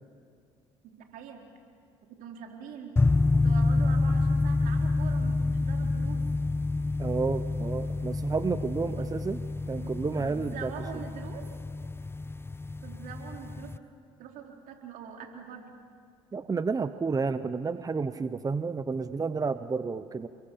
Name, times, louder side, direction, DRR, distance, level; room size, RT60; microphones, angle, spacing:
voice 1, 0.8-1.4 2.2-2.9 3.3-6.2 9.0-9.1 9.8-11.4 12.8-13.7 14.2-15.7, right 7 dB, 70° right, 2 dB, 4.3 m, -43 dB
sound 1, 3.0-13.8, left 3 dB, 15° left, 0.9 m, -28 dB
voice 2, 7.0-9.4 9.7-10.7 16.3-20.3, right 4 dB, 25° right, 12 dB, 0.9 m, -31 dB
28.5 x 22.0 x 8.6 m, 2.2 s
supercardioid pair, 70°, 14 cm